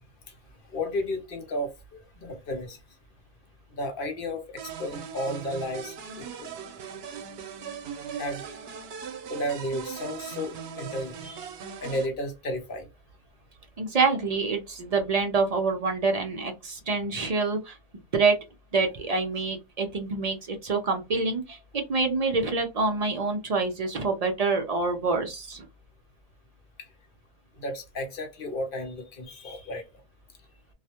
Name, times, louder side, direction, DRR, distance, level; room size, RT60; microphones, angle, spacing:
voice 1, 0.7-2.8 3.7-6.5 8.1-8.4 9.3-11.5 11.8-12.9 26.8-26.9 27.6-29.8, left 1 dB, 60° left, 0.8 m, -33 dB
sound 1, 4.6-12.1, right 7 dB, 75° right, 0.8 m, -39 dB
voice 2, 13.8-17.8 18.1-18.4 18.7-25.7, right 4 dB, 50° right, 0.5 m, -26 dB
2.3 x 2.1 x 2.8 m
omnidirectional pair, 1.0 m